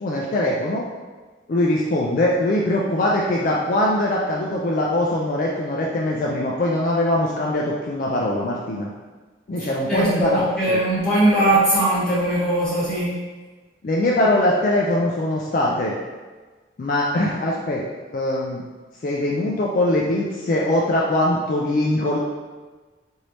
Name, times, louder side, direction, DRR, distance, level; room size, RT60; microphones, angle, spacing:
voice 1, 0.0-0.9 1.5-8.9 9.5-10.8 13.8-16.0 16.8-17.9 18.1-18.6 19.0-22.2, left 1 dB, 45° left, -3 dB, 0.3 m, -22 dB
voice 2, 9.9-13.2, right 1 dB, 5° left, -11 dB, 1.1 m, -20 dB
3.2 x 2.6 x 3.0 m, 1.3 s
head